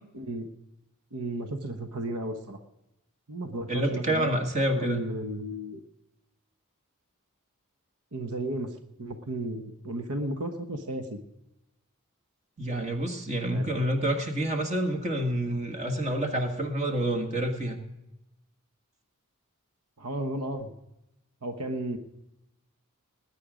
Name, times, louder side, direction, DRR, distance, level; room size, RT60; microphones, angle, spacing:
voice 1, 0.1-0.5 1.1-2.6 3.3-4.3 4.7-5.8 8.1-11.2 13.5-13.7 20.0-20.7 21.4-22.0, right 1 dB, 90° right, 6 dB, 1.2 m, -34 dB
voice 2, 3.7-5.0 12.6-17.8, right 1 dB, 30° right, 4 dB, 1.8 m, -28 dB
20.0 x 9.0 x 5.1 m, 0.91 s
head